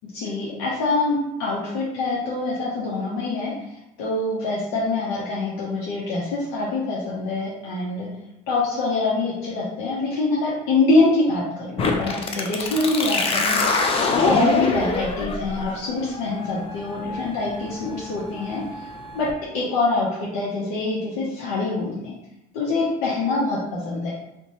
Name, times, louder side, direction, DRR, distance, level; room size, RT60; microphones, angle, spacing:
voice 1, 0.1-3.5 4.0-8.1 8.5-18.6 19.1-19.3 19.5-22.1 22.5-24.1, left 3 dB, 80° left, -5 dB, 0.7 m, -24 dB
sound 1, 11.8-19.3, left 3 dB, 30° left, 0.4 m, -26 dB
2.6 x 2.2 x 2.9 m, 0.88 s
supercardioid pair, 100°, 19 cm